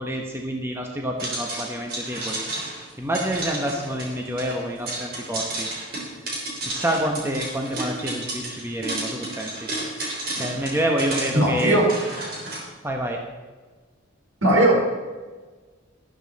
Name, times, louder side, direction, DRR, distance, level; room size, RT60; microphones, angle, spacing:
voice 1, 0.0-2.4 3.0-5.7 6.6-9.7 10.4-11.8 12.8-13.2, right 1 dB, 10° right, 1 dB, 1.1 m, -27 dB
sound 1, 1.2-12.6, right 2 dB, 45° right, 3.3 m, -32 dB
voice 2, 11.3-11.9 14.4-14.8, right 1 dB, 75° right, -1 dB, 4.1 m, -18 dB
12.5 x 12.5 x 4.2 m, 1.3 s
head